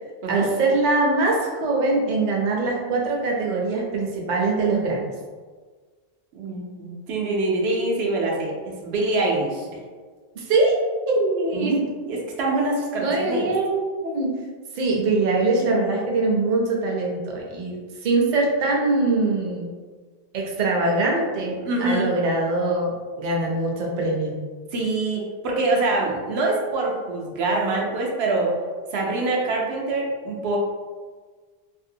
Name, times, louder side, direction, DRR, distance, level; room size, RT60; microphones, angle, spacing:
voice 1, 0.3-5.1 10.3-10.7 11.1-11.8 13.0-14.3 14.7-17.8 18.0-19.7 20.3-21.5 21.8-24.4, right 3 dB, 55° right, -2 dB, 0.6 m, -22 dB
voice 2, 6.3-9.7 11.5-11.8 12.0-13.5 21.6-22.1 24.7-28.5 28.9-30.6, right 2 dB, 90° right, -2 dB, 0.8 m, -25 dB
2.6 x 2.1 x 2.6 m, 1.5 s
omnidirectional pair, 1.0 m